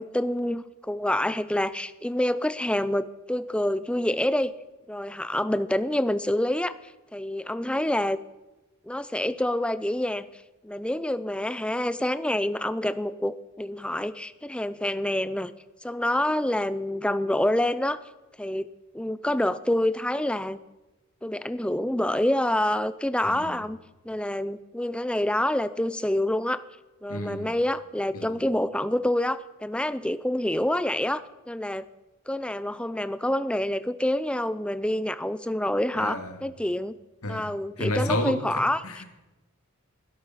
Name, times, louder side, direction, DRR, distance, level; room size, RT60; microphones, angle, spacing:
voice 1, 0.0-4.5 4.9-6.8 7.1-8.2 8.9-15.5 15.8-18.0 18.4-18.7 18.9-20.6 21.2-23.8 24.0-26.6 27.0-31.9 32.3-37.0 37.3-39.0, left 1 dB, 5° left, 14 dB, 0.5 m, -27 dB
voice 2, 23.2-23.5 27.1-27.5 28.1-28.4 35.9-36.4 37.2-37.5 37.8-39.0, left 1 dB, 80° left, 6 dB, 2.2 m, -31 dB
20.5 x 12.0 x 5.7 m, 1.1 s
head